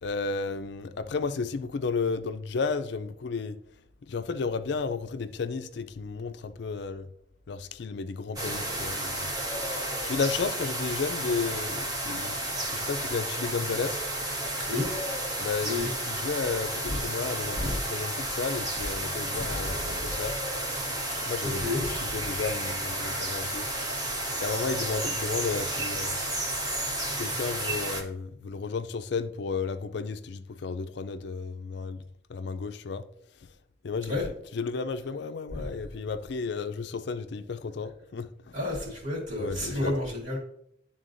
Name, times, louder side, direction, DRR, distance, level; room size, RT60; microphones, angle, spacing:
voice 1, 0.0-3.6 4.0-7.1 7.5-9.3 10.0-12.4 12.7-14.0 15.4-17.6 17.9-20.4 21.2-23.7 24.4-26.1 27.2-32.0 32.3-33.1 33.8-38.5 39.4-39.9, left 4 dB, 65° left, 0.4 m, -33 dB
sound 1, 8.4-28.0, right 1 dB, 20° right, 0.8 m, -32 dB
voice 2, 15.3-15.9 16.9-17.0 17.6-17.8 19.3-20.2 21.4-21.9 34.1-34.2 35.5-35.7 38.5-40.4, left 2 dB, 40° right, 2.6 m, -31 dB
11.0 x 3.8 x 2.6 m
head